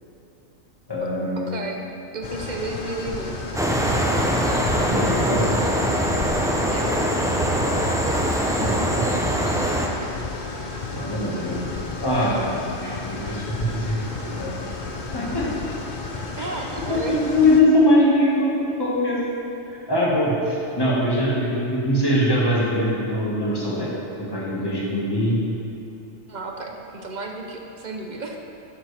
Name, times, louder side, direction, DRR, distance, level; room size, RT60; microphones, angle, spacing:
voice 1, 0.9-1.6 4.8-5.5 8.6-9.1 9.5-9.9 10.9-11.6 12.0-12.5 12.8-14.0 14.4-14.5 15.1-15.5 16.4-16.5 16.9-18.5 18.8-19.2 19.9-23.9 24.2-25.4, left 1 dB, 15° left, -7 dB, 1.8 m, -22 dB
voice 2, 1.5-1.8 2.1-3.4 6.7-6.9 16.4-17.2 26.3-28.4, right 3 dB, 40° right, 2 dB, 0.7 m, -32 dB
sound 1, 2.2-17.6, left 3 dB, 40° left, 0.8 m, -33 dB
sound 2, 3.5-9.9, right 1 dB, 5° right, 0.3 m, -22 dB
11.5 x 7.5 x 3.5 m, 3.0 s
omnidirectional pair, 1.4 m